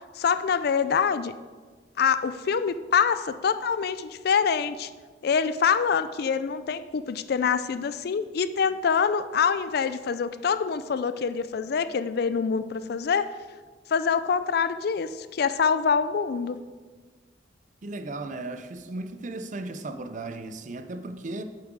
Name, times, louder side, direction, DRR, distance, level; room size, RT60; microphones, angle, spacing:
voice 1, 0.1-1.3 2.0-4.9 5.2-13.3 13.9-16.6, left 6 dB, 55° left, 13 dB, 0.4 m, -25 dB
voice 2, 17.8-21.4, right 2 dB, 45° right, 9 dB, 0.5 m, -36 dB
7.5 x 7.4 x 4.6 m, 1.5 s
head